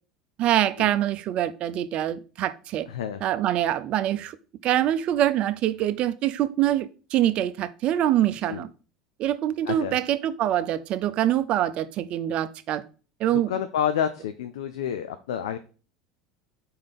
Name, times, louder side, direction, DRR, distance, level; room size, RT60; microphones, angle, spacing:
voice 1, 0.4-2.9 3.2-4.4 4.6-8.7 9.2-12.8 13.2-13.5, right 12 dB, 45° right, 0.6 m, -24 dB
voice 2, 2.9-3.2 8.5-8.6 9.7-10.0 13.5-15.6, left 9 dB, 70° left, 0.5 m, -29 dB
5.1 x 4.7 x 5.5 m
figure-of-eight pair, 75°, 3 cm